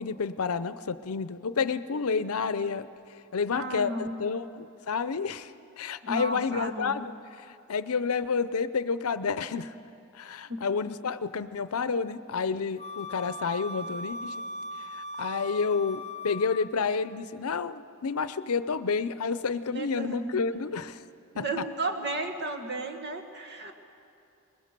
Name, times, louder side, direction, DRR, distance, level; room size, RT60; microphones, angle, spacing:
voice 1, 0.0-2.9 3.3-5.5 5.8-7.1 7.4-9.7 10.1-14.4 15.2-21.0 21.4-21.5, left 5 dB, 80° left, 14 dB, 0.6 m, -30 dB
voice 2, 3.5-4.1 6.0-6.9 10.5-10.6 19.7-20.3 21.3-23.7, right 2 dB, 50° right, 5 dB, 1.7 m, -33 dB
Wind instrument woodwind instrument, 12.8-16.8, left 1 dB, 30° left, 0.5 m, -39 dB
22.5 x 20.5 x 6.7 m, 2.6 s
head